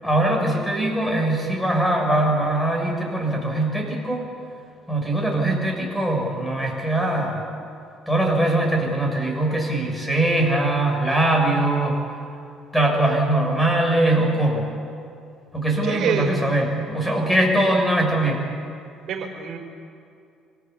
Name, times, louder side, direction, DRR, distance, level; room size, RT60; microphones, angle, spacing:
voice 1, 0.0-4.2 4.9-7.4 8.1-12.0 12.7-14.6 15.5-18.4, right 1 dB, 5° left, 0 dB, 7.2 m, -21 dB
voice 2, 15.8-16.4 19.1-19.6, right 7 dB, 55° right, 2 dB, 5.1 m, -26 dB
26.0 x 18.0 x 8.6 m, 2.5 s
supercardioid pair, 90°, 0 cm